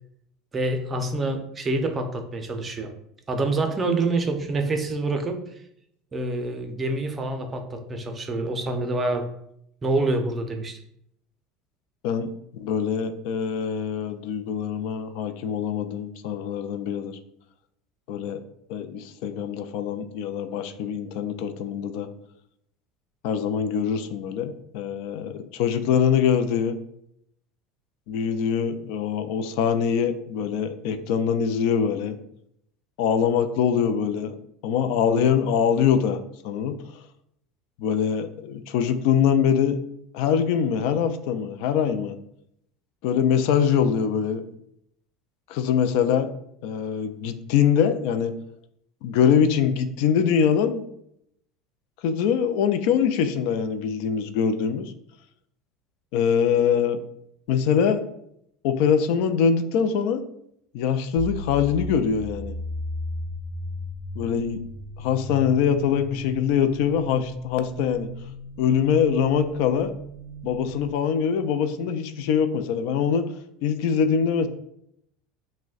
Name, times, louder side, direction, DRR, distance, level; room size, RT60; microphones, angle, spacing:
voice 1, 0.5-2.9 3.3-5.6 6.1-9.3 9.8-10.8, right 2 dB, 25° right, 6 dB, 0.5 m, -26 dB
voice 2, 12.0-17.2 18.1-18.4 18.7-22.1 23.2-26.8 28.1-32.2 33.0-34.4 34.6-36.2 36.4-36.7 37.8-39.8 40.1-42.2 43.0-44.4 45.5-46.3 46.6-48.3 49.0-50.9 52.0-54.9 56.1-57.0 57.5-58.0 58.6-60.2 60.7-62.6 64.2-64.6 65.0-68.1 68.6-69.9 70.4-73.3 73.6-74.5, left 7 dB, 70° left, 9 dB, 0.3 m, -23 dB
sound 1, 61.2-70.9, left 1 dB, 20° left, 0.6 m, -36 dB
6.0 x 2.1 x 2.4 m, 0.73 s
supercardioid pair, 120°, 0 cm